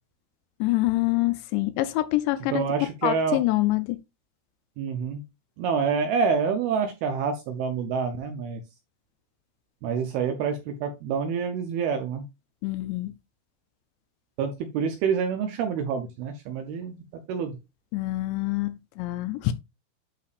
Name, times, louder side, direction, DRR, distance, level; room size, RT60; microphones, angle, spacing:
voice 1, 0.6-4.0 12.6-13.1 17.9-19.5, left 17 dB, 85° left, 2.7 m, -26 dB
voice 2, 2.5-3.4 4.8-5.2 5.6-8.6 9.8-12.3 14.4-17.0 17.3-17.6, right 6 dB, 80° right, 2.3 m, -27 dB
11.0 x 4.8 x 2.5 m
omnidirectional pair, 5.3 m